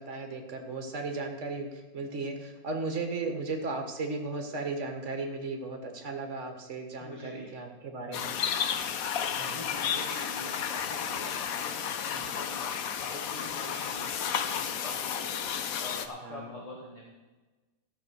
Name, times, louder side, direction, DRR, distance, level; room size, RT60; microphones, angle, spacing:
voice 1, 0.0-8.4 9.4-9.7 12.1-12.3 16.2-16.4, right 3 dB, 45° right, 4 dB, 1.8 m, -36 dB
voice 2, 7.0-7.5 9.4-15.4 15.8-17.0, left 1 dB, 20° left, -2 dB, 1.7 m, -44 dB
sound 1, 8.1-16.1, left 8 dB, 65° left, 1.1 m, -32 dB
14.5 x 6.3 x 6.4 m, 1.2 s
omnidirectional pair, 1.8 m